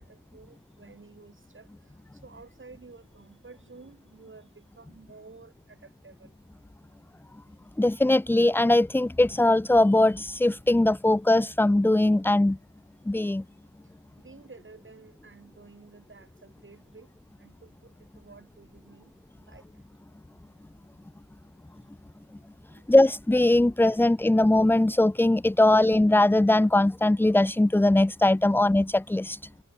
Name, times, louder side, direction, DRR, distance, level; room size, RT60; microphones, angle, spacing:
voice 1, 0.0-6.3 14.2-17.1 17.4-19.8 22.7-22.9, right 4 dB, 35° right, 6.9 m, -52 dB
voice 2, 7.8-12.6 13.1-13.4 22.9-29.4, left 1 dB, 5° left, 0.4 m, -21 dB
wide cardioid pair, 145°, 33 cm